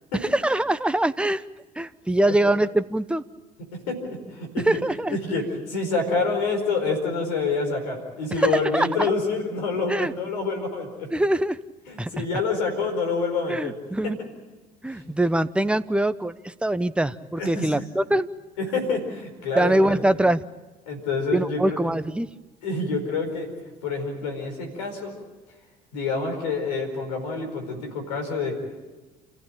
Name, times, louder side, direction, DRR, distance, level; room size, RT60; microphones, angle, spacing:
voice 1, 0.2-1.4 1.8-3.2 4.6-5.2 8.4-9.1 9.9-10.1 11.1-11.6 12.0-12.3 13.5-14.2 14.8-18.3 19.6-20.4 21.3-22.3, right 1 dB, 5° right, 12 dB, 1.0 m, -23 dB
voice 2, 2.0-2.3 3.7-4.8 5.1-11.1 11.9-13.8 14.9-15.0 17.4-17.7 18.6-20.0 20.9-21.9 22.6-23.5 23.8-25.1 25.9-28.6, left 4 dB, 85° left, 5 dB, 4.8 m, -27 dB
28.5 x 15.0 x 8.8 m, 1.2 s
hypercardioid pair, 60°, 21 cm